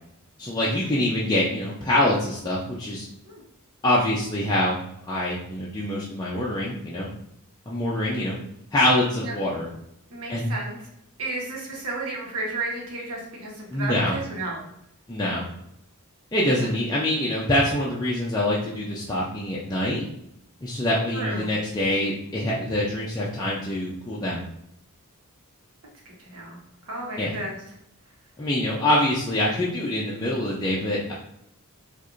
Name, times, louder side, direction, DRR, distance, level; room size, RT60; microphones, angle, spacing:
voice 1, 0.4-3.1 3.8-4.8 5.1-7.1 7.7-8.4 8.7-9.7 10.3-10.5 13.7-14.2 15.1-15.4 16.3-20.1 20.6-24.4 27.2-27.3 28.4-31.1, left 1 dB, 20° left, -6 dB, 0.4 m, -25 dB
voice 2, 10.1-10.8 11.2-14.7 21.1-21.6 26.2-26.6 26.9-27.6, right 2 dB, 85° right, -2 dB, 1.1 m, -32 dB
4.5 x 2.5 x 2.5 m, 0.78 s
head